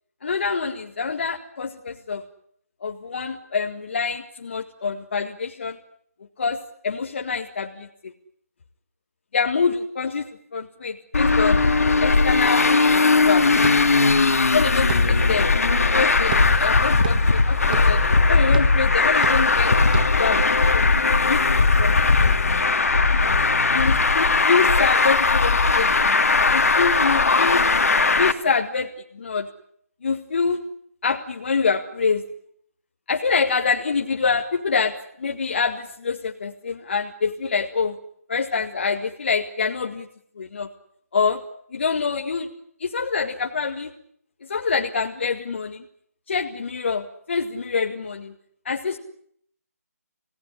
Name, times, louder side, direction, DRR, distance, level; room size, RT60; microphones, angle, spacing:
voice 1, 0.2-2.2 2.8-5.8 6.4-8.1 9.3-10.3 10.5-11.6 12.0-13.5 14.5-15.5 15.8-18.0 18.3-19.7 20.1-20.9 21.3-21.4 21.8-21.9 22.2-22.3 23.1-23.4 23.7-26.2 26.5-27.6 28.0-28.9 29.1-29.5 30.0-30.6 31.0-32.2 33.1-38.0 38.3-40.1 40.4-40.7 41.1-41.4 41.7-42.5 42.8-43.9 44.5-45.8 46.3-48.3 48.7-49.0, left 5 dB, 45° left, 3 dB, 1.9 m, -25 dB
Traffic noise roadway noise, 11.1-28.3, left 3 dB, 65° left, 2.5 m, -18 dB
sound 1, 13.6-20.4, right 6 dB, 35° right, 1.6 m, -34 dB
27.5 x 18.0 x 9.9 m, 0.68 s
figure-of-eight pair, 165°, 8 cm